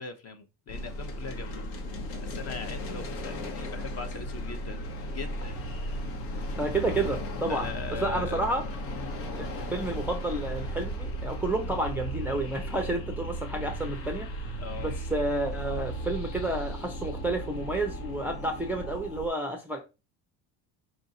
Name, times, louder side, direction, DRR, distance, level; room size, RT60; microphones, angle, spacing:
voice 1, 0.0-1.6 2.1-4.8 5.1-6.0 6.3-6.6 7.5-8.5 8.9-9.2 14.6-14.9, left 5 dB, 35° left, 0.7 m, -41 dB
sound 1, 0.7-19.3, equal, 85° left, 1.3 m, -35 dB
voice 2, 6.6-7.7 8.0-8.6 9.4-14.3 14.8-19.8, right 2 dB, 5° right, 0.4 m, -30 dB
4.9 x 2.5 x 4.0 m
cardioid pair, 130°, 45 cm